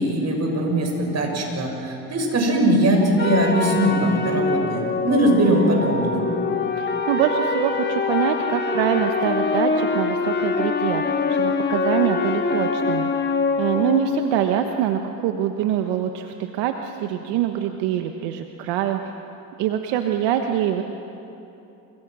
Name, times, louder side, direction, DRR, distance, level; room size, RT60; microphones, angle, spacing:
voice 1, 0.0-6.2, right 1 dB, 40° right, 2 dB, 7.1 m, -20 dB
sound 1, 3.2-14.8, left 4 dB, 25° left, 2.4 m, -24 dB
voice 2, 6.8-19.2 19.6-20.8, right 10 dB, 80° right, 5 dB, 1.4 m, -24 dB
29.0 x 25.5 x 6.2 m, 2.9 s
supercardioid pair, 85°, 41 cm